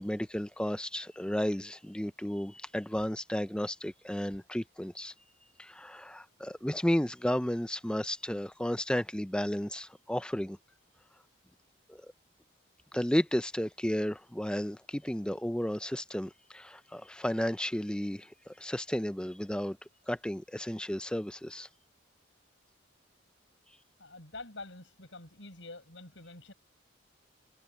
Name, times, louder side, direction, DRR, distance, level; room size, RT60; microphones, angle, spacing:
voice 1, 0.0-5.1 5.6-10.6 11.9-12.1 12.9-19.8 20.1-21.7, equal, 5° left, 0.5 m, -33 dB
voice 2, 24.0-26.5, left 2 dB, 70° left, 7.1 m, -47 dB
head